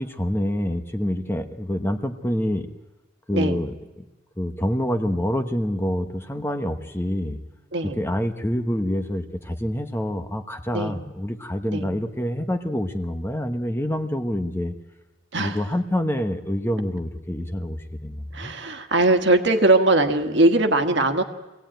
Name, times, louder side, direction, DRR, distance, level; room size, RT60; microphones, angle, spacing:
voice 1, 0.0-2.7 3.3-4.0 4.4-7.4 7.8-14.7 15.4-18.5, equal, 10° left, 7 dB, 1.0 m, -27 dB
voice 2, 18.3-21.2, right 2 dB, 60° right, 6 dB, 1.6 m, -20 dB
24.5 x 17.0 x 9.1 m, 1.1 s
head